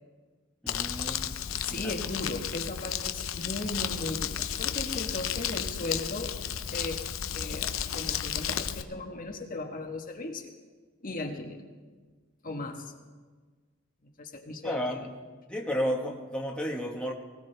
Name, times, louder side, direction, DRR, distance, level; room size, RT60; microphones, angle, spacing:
voice 1, 0.6-1.4 1.7-1.8 14.6-15.1 15.5-17.1, equal, 5° left, -2 dB, 1.4 m, -32 dB
Crumpling crinkling, 0.7-8.8, left 9 dB, 85° left, 0.7 m, -33 dB
voice 2, 1.6-6.4 6.7-7.0 7.3-10.5 11.0-11.6 12.4-12.9 14.2-15.1, left 2 dB, 45° left, 2 dB, 1.3 m, -37 dB
19.5 x 18.0 x 3.4 m, 1.4 s
head